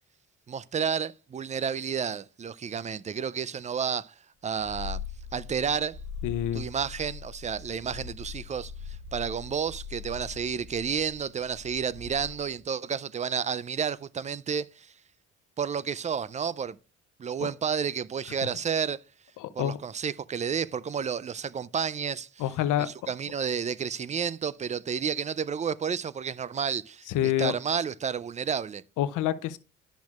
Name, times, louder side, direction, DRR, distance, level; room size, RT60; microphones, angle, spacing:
voice 1, 0.5-4.1 4.4-5.0 5.3-6.0 6.5-14.9 15.6-16.8 17.2-19.0 19.6-22.4 22.8-28.8, right 7 dB, 25° right, 0.3 m, -31 dB
Purr, 4.6-12.6, left 6 dB, 50° right, 2.7 m, -41 dB
voice 2, 6.2-6.7 17.4-17.5 19.4-19.8 22.4-22.9 27.1-27.5 29.0-29.6, left 12 dB, 90° left, 0.6 m, -27 dB
10.5 x 6.1 x 2.4 m
cardioid pair, 90°, 30 cm